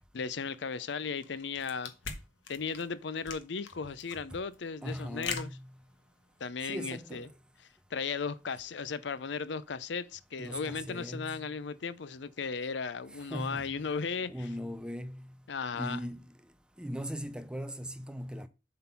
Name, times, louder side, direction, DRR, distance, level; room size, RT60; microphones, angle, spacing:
voice 1, 0.1-1.9 2.5-5.5 6.4-7.3 7.9-14.3 15.5-16.0, left 5 dB, 65° left, 0.5 m, -36 dB
sound 1, 1.2-6.4, left 6 dB, 80° left, 1.3 m, -42 dB
voice 2, 4.8-5.7 6.6-7.3 10.4-11.5 13.1-13.7 14.2-15.3 15.7-16.3 16.8-18.5, equal, 5° right, 0.5 m, -39 dB
7.6 x 3.9 x 5.8 m
head